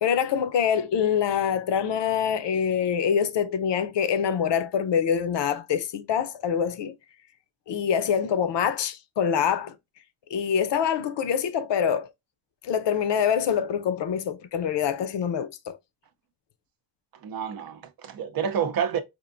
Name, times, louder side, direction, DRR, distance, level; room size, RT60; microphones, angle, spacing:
voice 1, 0.0-6.9 7.7-9.7 10.3-12.1 12.6-15.8, left 8 dB, 60° left, 0.6 m, -25 dB
voice 2, 17.2-19.0, right 8 dB, 45° right, 0.6 m, -28 dB
4.4 x 2.5 x 2.5 m
wide cardioid pair, 130°, 49 cm